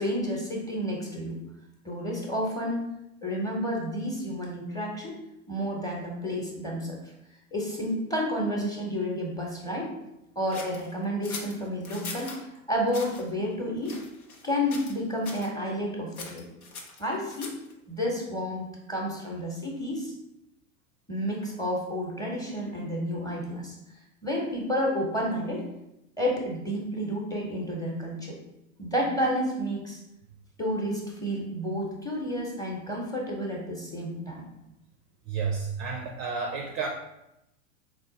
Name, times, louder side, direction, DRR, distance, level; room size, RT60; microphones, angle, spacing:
voice 1, 0.0-1.4 1.8-5.2 5.5-7.0 7.5-10.0 10.4-12.3 12.7-14.0 14.4-16.5 17.0-17.6 17.9-20.1 21.1-23.7 24.2-25.7 26.2-28.4 28.8-30.0 30.6-34.5, equal, 10° left, -2 dB, 0.9 m, -30 dB
sound 1, 10.5-12.4 12.9-13.2 13.8-14.5 14.7-15.0 15.2-15.5 16.1-17.7, left 4 dB, 90° left, 0.9 m, -41 dB
voice 2, 35.3-36.9, right 5 dB, 30° right, 1 dB, 0.4 m, -31 dB
3.7 x 2.4 x 3.9 m, 0.87 s
hypercardioid pair, 105°, 42 cm